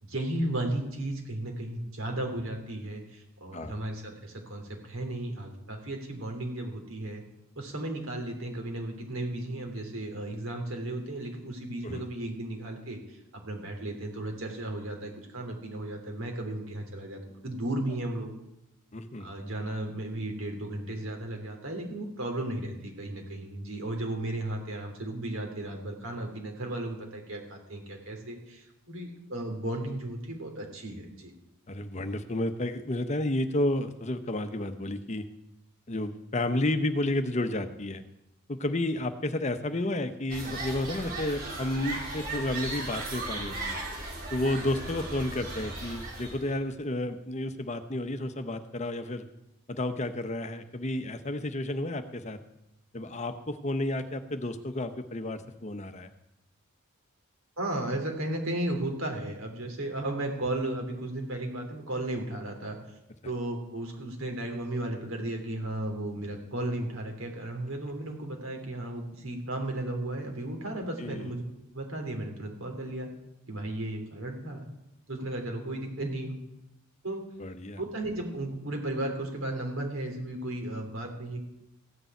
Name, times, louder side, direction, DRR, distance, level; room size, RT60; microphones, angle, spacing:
voice 1, 0.0-7.2 7.5-13.2 13.4-18.3 19.2-31.3 57.6-62.8 63.2-71.4 71.7-73.1 73.5-74.6 75.1-76.4 77.0-77.2 77.8-81.5, right 1 dB, 70° right, 2 dB, 3.3 m, -35 dB
voice 2, 18.9-19.3 31.7-35.3 35.9-38.0 38.5-43.8 44.3-49.3 49.7-52.4 52.9-56.1 71.0-71.3 77.4-77.8, left 1 dB, 35° left, 9 dB, 0.8 m, -31 dB
sound 1, 40.3-46.5, right 2 dB, 45° right, 4.0 m, -37 dB
15.0 x 6.8 x 9.1 m, 0.88 s
head